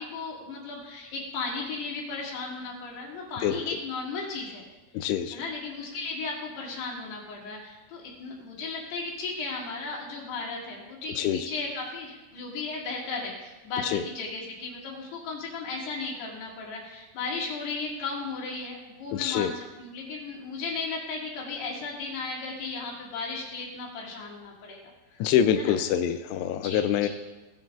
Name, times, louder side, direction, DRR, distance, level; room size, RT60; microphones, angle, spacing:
voice 1, 0.0-4.7 5.0-25.3 25.6-25.8 26.6-27.1, left 4 dB, 65° left, -3 dB, 3.9 m, -35 dB
voice 2, 4.9-5.4 11.1-11.5 13.8-14.0 19.1-19.5 25.2-27.1, left 9 dB, 85° left, 8 dB, 2.4 m, -25 dB
17.5 x 9.1 x 2.5 m, 1.1 s
omnidirectional pair, 5.4 m